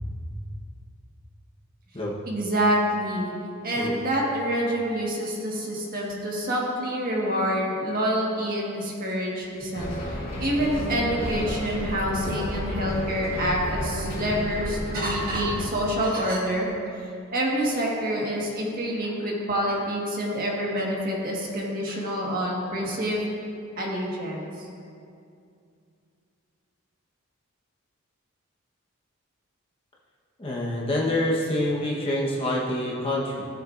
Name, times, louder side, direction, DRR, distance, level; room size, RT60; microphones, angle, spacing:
voice 1, 2.3-3.3 3.6-9.9 10.4-16.7 17.3-23.3 23.8-24.5, equal, 40° right, -3 dB, 1.7 m, -27 dB
Bus, 9.7-15.7, left 1 dB, 45° left, 2.2 m, -31 dB
voice 2, 30.4-33.4, left 1 dB, 25° left, -4 dB, 1.2 m, -26 dB
16.0 x 7.7 x 2.6 m, 2.5 s
head